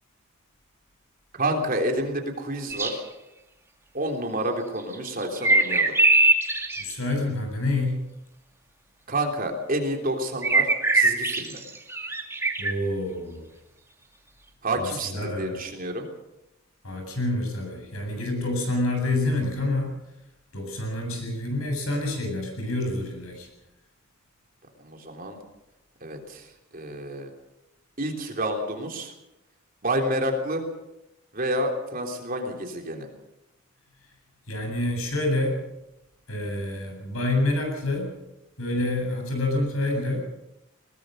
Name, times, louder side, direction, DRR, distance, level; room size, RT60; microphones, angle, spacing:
voice 1, 1.4-3.0 3.9-5.9 9.1-11.6 14.6-16.1 24.8-25.4 26.0-27.3 28.0-29.1 29.8-30.6 31.3-33.1, right 1 dB, 40° right, 3 dB, 3.4 m, -29 dB
sound 1, 2.7-2.9 4.8-6.9 10.4-12.7, right 2 dB, 10° right, 2.2 m, -21 dB
voice 2, 6.8-8.1 12.6-13.5 14.8-15.6 16.8-19.9 20.5-23.5 34.5-35.6 36.3-38.1 38.6-40.2, left 2 dB, 80° left, 3 dB, 8.0 m, -27 dB
21.0 x 20.0 x 6.6 m, 0.91 s
head